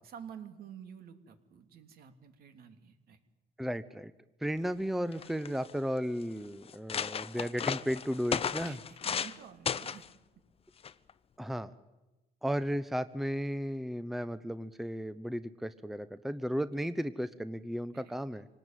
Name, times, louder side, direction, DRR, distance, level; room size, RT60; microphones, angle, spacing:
voice 1, 0.0-3.2 8.6-10.0 16.7-16.9 17.9-18.1, right 8 dB, 65° right, 7 dB, 3.0 m, -50 dB
voice 2, 3.6-4.1 4.4-8.8 11.4-11.7 12.4-18.5, equal, ahead, 13 dB, 0.8 m, -34 dB
sound 1, 4.8-4.9 5.1-5.7 6.3-6.4 6.7-9.4 9.7-10.1 10.8-11.1, left 7 dB, 35° left, 0.8 m, -34 dB
26.0 x 19.0 x 9.2 m, 1.1 s
cardioid pair, 110°, 17 cm